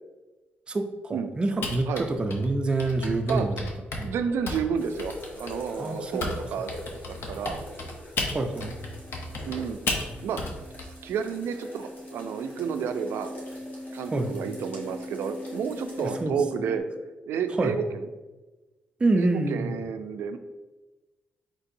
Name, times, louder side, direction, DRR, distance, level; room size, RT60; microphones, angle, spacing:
voice 1, 0.7-3.7 4.0-4.2 5.8-6.2 8.3-8.7 14.1-14.3 16.0-16.3 17.6-17.8 19.0-19.7, right 2 dB, 25° right, 4 dB, 0.4 m, -27 dB
Typing, 1.6-6.4 6.7-10.8, left 3 dB, 70° left, 0.8 m, -33 dB
voice 2, 3.3-3.6 4.0-6.7 7.1-7.6 9.5-9.8 10.2-10.4 11.0-13.3 13.9-16.8 17.3-18.1 19.2-20.4, right 6 dB, 90° right, 8 dB, 0.4 m, -31 dB
sound 1, 4.7-16.2, left 1 dB, 45° left, 1.4 m, -45 dB
sound 2, 8.3-16.8, left 1 dB, 25° left, 1.2 m, -42 dB
4.4 x 4.1 x 2.6 m, 1.2 s
cardioid pair, 110°, 4 cm